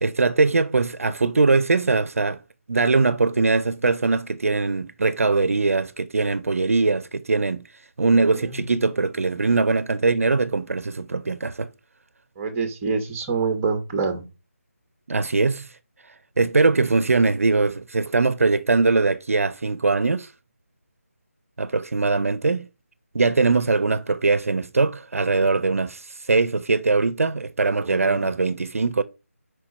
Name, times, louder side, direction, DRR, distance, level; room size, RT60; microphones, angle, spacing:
voice 1, 0.0-2.4 2.7-7.6 8.0-11.7 15.1-15.7 16.4-20.3 21.6-22.7 23.1-29.0, right 3 dB, 65° right, 0.6 m, -21 dB
voice 2, 8.2-8.9 12.4-14.2 27.8-28.3, right 4 dB, 15° right, 1.0 m, -27 dB
4.8 x 4.4 x 5.2 m
figure-of-eight pair, 170°, 8 cm